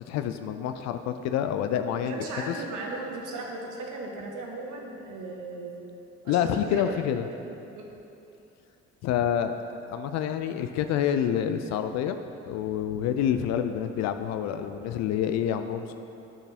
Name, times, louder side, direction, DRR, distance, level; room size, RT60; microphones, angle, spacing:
voice 1, 0.1-2.2 2.5-2.6 6.3-7.2 9.0-9.6 9.9-12.2 12.5-16.0, left 9 dB, 45° left, 9 dB, 0.4 m, -27 dB
voice 2, 2.1-5.8 6.2-6.9 7.7-7.8, right 2 dB, 50° right, 0 dB, 1.4 m, -36 dB
11.5 x 6.6 x 2.8 m, 2.9 s
figure-of-eight pair, 50°, 38 cm